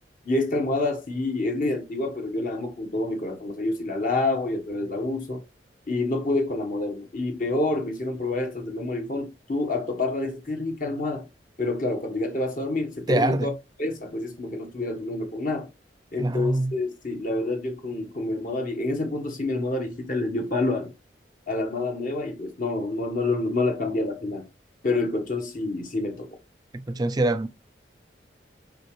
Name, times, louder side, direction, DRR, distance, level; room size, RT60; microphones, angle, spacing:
voice 1, 0.3-5.4 5.9-11.2 11.6-13.5 13.8-15.7 16.1-20.9 21.5-24.5 24.8-26.3, left 2 dB, 50° left, 1.2 m, -28 dB
voice 2, 13.1-13.5 16.2-16.7 26.7-27.5, right 2 dB, 25° right, 0.5 m, -24 dB
6.7 x 4.9 x 3.1 m
head